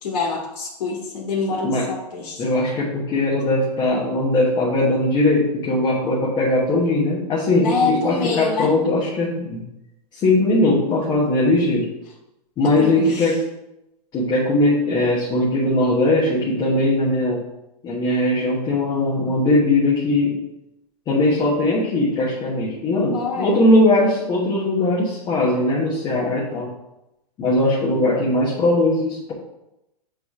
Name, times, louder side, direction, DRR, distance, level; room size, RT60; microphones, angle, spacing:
voice 1, 0.0-2.4 7.6-8.8 12.6-13.3 23.1-23.6, left 4 dB, 65° left, -2 dB, 1.7 m, -26 dB
voice 2, 2.4-9.6 10.1-11.9 12.6-13.4 14.1-17.4 17.8-20.4 21.1-26.7 27.4-29.3, left 2 dB, 20° left, -5 dB, 1.2 m, -20 dB
8.0 x 3.3 x 6.0 m, 0.89 s
hypercardioid pair, 160°, 21 cm